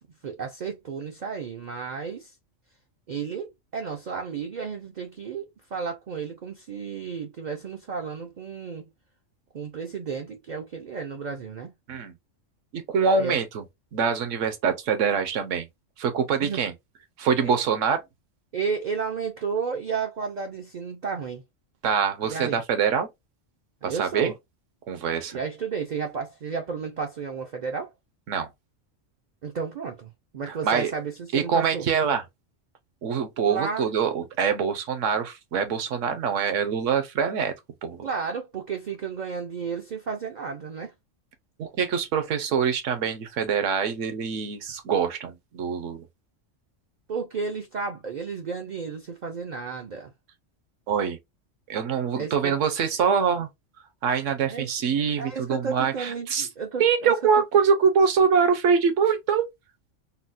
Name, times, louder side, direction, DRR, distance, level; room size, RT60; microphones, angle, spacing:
voice 1, 0.2-2.3 3.1-8.9 9.5-11.7 13.2-13.4 16.4-16.6 17.4-17.5 18.5-21.4 22.3-22.6 23.8-24.3 25.3-27.9 29.4-31.9 33.5-33.9 38.0-40.9 47.1-50.1 52.2-52.6 54.5-54.7 55.2-57.1, right 5 dB, 55° right, 0.5 m, -32 dB
voice 2, 12.7-13.6 13.9-15.7 16.0-16.7 17.2-18.0 21.8-23.1 23.8-24.3 24.9-25.4 28.3-28.5 30.5-30.9 31.3-32.2 33.0-37.5 37.8-38.0 41.6-46.1 50.9-51.2 51.7-53.5 54.0-56.5 56.8-59.5, right 6 dB, 75° right, 1.1 m, -24 dB
3.9 x 2.1 x 2.5 m
omnidirectional pair, 1.3 m